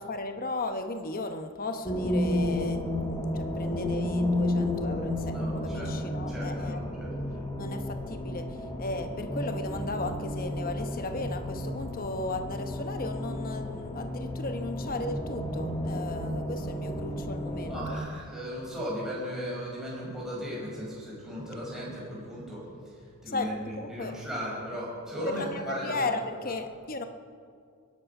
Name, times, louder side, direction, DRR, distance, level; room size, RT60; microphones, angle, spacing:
voice 1, 0.0-7.0 7.6-18.0 23.3-24.2 25.2-27.1, left 2 dB, 40° left, 7 dB, 1.0 m, -36 dB
sound 1, 1.8-17.9, left 1 dB, 20° left, 1.9 m, -32 dB
voice 2, 5.3-5.9 6.3-7.4 17.7-26.2, equal, ahead, -7 dB, 5.6 m, -37 dB
21.5 x 11.5 x 5.5 m, 2.2 s
head